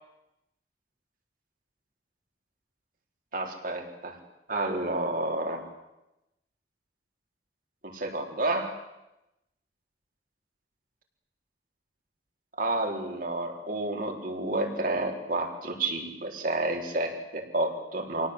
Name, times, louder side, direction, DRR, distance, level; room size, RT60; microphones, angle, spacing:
voice 1, 3.3-4.2 4.5-5.6 7.9-8.7 12.6-18.3, right 2 dB, 50° right, 2 dB, 4.2 m, -30 dB
26.5 x 18.0 x 8.1 m, 0.93 s
head